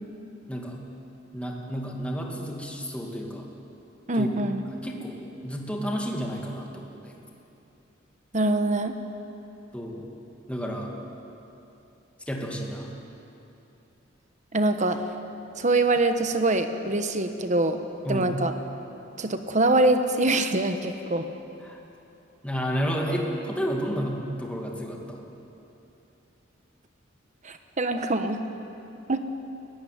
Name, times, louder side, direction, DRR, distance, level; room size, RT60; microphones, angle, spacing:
voice 1, 1.3-3.5 4.1-4.3 4.8-5.2 5.4-7.2 9.7-10.1 10.5-11.0 12.3-12.9 18.1-18.3 21.6-21.8 22.4-25.2, equal, 5° left, 0 dB, 2.3 m, -31 dB
voice 2, 4.1-4.6 8.3-9.0 14.5-15.0 15.6-17.8 18.1-18.5 19.2-21.3 27.4-28.4 29.1-29.2, right 2 dB, 40° right, 8 dB, 1.2 m, -24 dB
20.0 x 15.0 x 9.5 m, 3.0 s
head